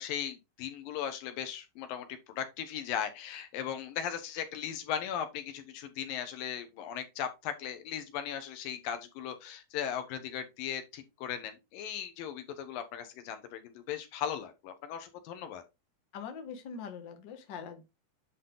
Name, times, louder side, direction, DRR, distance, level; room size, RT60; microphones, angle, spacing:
voice 1, 0.0-15.6, left 9 dB, 85° left, 2.9 m, -38 dB
voice 2, 16.1-17.8, left 6 dB, 50° left, 1.5 m, -42 dB
10.0 x 4.2 x 3.8 m
omnidirectional pair, 3.9 m